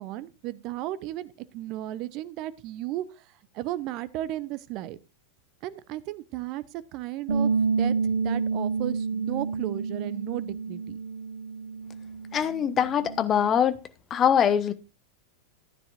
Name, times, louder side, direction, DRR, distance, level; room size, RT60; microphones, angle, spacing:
voice 1, 0.0-3.2 3.5-5.0 5.6-6.6 6.9-11.0, right 15 dB, 40° right, 0.8 m, -34 dB
Bass guitar, 7.3-13.5, right 5 dB, 70° right, 1.1 m, -29 dB
voice 2, 12.3-13.8 14.1-14.7, left 8 dB, 25° left, 1.0 m, -23 dB
14.5 x 9.9 x 2.5 m
figure-of-eight pair, 90°, 0 cm